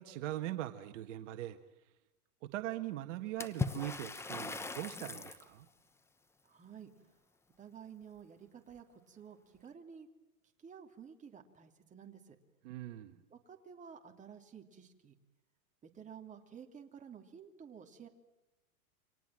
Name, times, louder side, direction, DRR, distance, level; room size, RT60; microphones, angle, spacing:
voice 1, 0.0-1.6 2.5-5.7 12.6-13.2, right 14 dB, 55° right, 7 dB, 1.8 m, -41 dB
Water / Splash splatter, 3.4-5.5, left 3 dB, 5° left, 0.9 m, -39 dB
voice 2, 6.4-6.9 7.6-10.1 10.6-12.4 13.3-15.1 15.8-18.1, right 7 dB, 15° right, 3 dB, 3.0 m, -52 dB
29.5 x 25.5 x 7.7 m, 0.99 s
hypercardioid pair, 140°, 44 cm